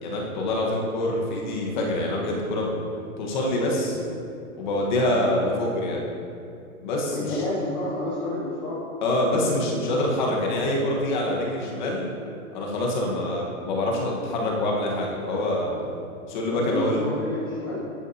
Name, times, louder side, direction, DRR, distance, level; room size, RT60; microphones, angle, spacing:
voice 1, 0.0-2.8 3.2-4.0 4.6-6.0 6.8-7.4 9.0-12.1 12.5-15.7 16.3-17.0, left 1 dB, 30° left, -2 dB, 1.3 m, -25 dB
voice 2, 7.1-8.8 16.5-17.8, left 1 dB, 15° left, -7 dB, 0.6 m, -29 dB
10.0 x 9.1 x 2.8 m, 2.5 s
hypercardioid pair, 170°, 43 cm